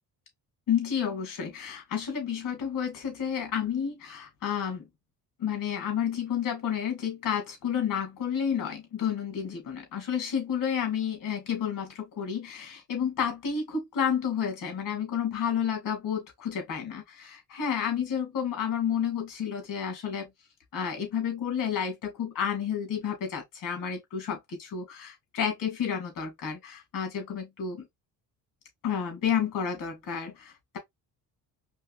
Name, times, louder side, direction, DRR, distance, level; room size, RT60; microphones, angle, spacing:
voice 1, 0.7-4.8 5.4-20.3 20.7-27.9 28.8-30.8, left 8 dB, 55° left, 2.6 m, -30 dB
4.5 x 3.3 x 2.5 m
cardioid pair, 130°, 38 cm